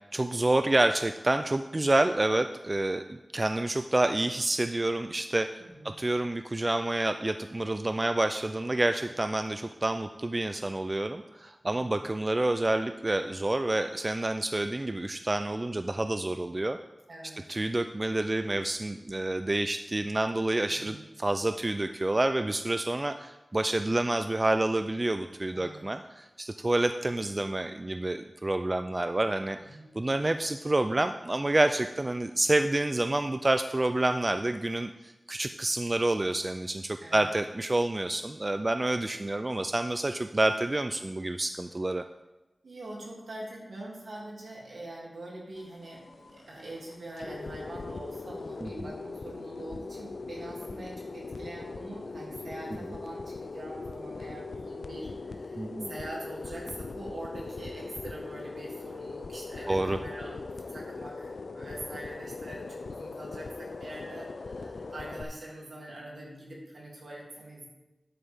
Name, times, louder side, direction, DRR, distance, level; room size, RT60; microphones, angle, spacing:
voice 1, 0.1-5.5 5.8-16.8 17.5-29.6 29.9-42.0 48.6-48.9 55.6-55.9 59.7-60.0, right 2 dB, 35° right, 8 dB, 0.4 m, -28 dB
voice 2, 5.6-6.0 17.1-17.5 20.7-21.0 25.5-25.9 29.5-29.9 37.0-37.3 42.6-67.7, right 1 dB, 80° right, -3 dB, 2.9 m, -43 dB
sound 1, 45.6-65.2, left 3 dB, 85° left, 0.5 m, -40 dB
10.0 x 8.7 x 3.6 m, 1.1 s
wide cardioid pair, 65°, 0 cm